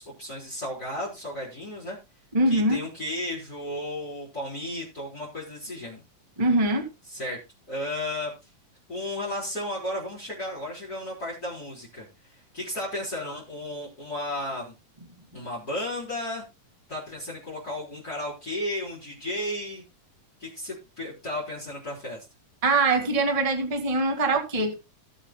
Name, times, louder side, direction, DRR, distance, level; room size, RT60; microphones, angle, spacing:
voice 1, 0.0-2.0 2.5-6.0 7.1-7.4 7.7-8.3 8.9-12.0 12.5-14.7 15.3-16.4 16.9-19.8 20.4-22.3, left 1 dB, 25° left, 4.3 m, -34 dB
voice 2, 2.3-2.8 6.4-6.9 22.6-24.7, right 2 dB, 15° right, 1.4 m, -23 dB
19.5 x 7.5 x 2.2 m
omnidirectional pair, 3.9 m